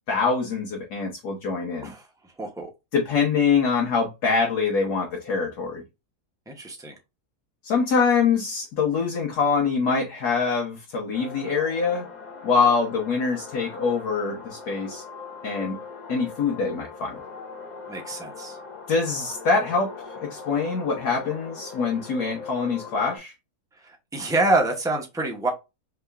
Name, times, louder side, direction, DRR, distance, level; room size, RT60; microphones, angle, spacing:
voice 1, 0.1-1.9 2.9-5.8 7.6-12.1 12.4-15.0 15.4-15.8 16.1-17.2 18.9-19.9 20.2-23.3, left 5 dB, 75° left, 1.5 m, -24 dB
voice 2, 2.4-2.7 6.5-6.9 17.9-18.6 23.8-25.5, right 2 dB, 5° right, 0.5 m, -26 dB
sound 1, 11.1-23.2, left 4 dB, 35° left, 0.8 m, -40 dB
3.6 x 2.9 x 3.3 m
omnidirectional pair, 1.7 m